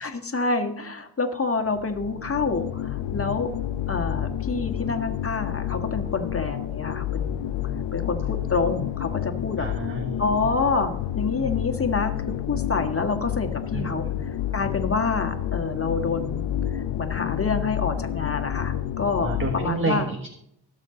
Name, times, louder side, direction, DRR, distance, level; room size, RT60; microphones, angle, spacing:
voice 1, 0.0-3.5 3.9-7.3 7.9-9.7 10.2-12.1 12.5-14.0 14.5-20.1, left 4 dB, 30° left, 5 dB, 1.7 m, -27 dB
sound 1, 1.7-19.7, left 11 dB, 85° left, 0.6 m, -29 dB
voice 2, 9.6-10.2 13.7-14.1 19.2-20.3, right 3 dB, 30° right, 4 dB, 1.4 m, -29 dB
17.0 x 6.6 x 3.9 m, 0.73 s
cardioid pair, 55°, 43 cm